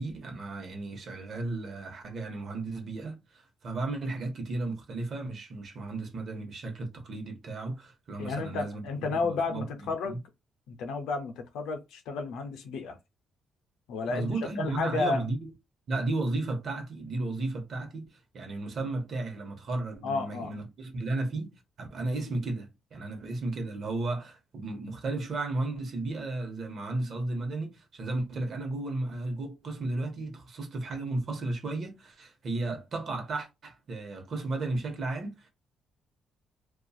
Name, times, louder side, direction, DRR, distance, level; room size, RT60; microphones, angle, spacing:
voice 1, 0.0-10.2 14.1-15.5 15.9-35.5, right 2 dB, 55° right, 0.9 m, -34 dB
voice 2, 8.2-10.2 10.7-13.0 13.9-14.3 14.6-15.3 20.0-20.5, left 4 dB, 85° left, 0.5 m, -32 dB
2.6 x 2.3 x 2.3 m
cardioid pair, 90°, 0 cm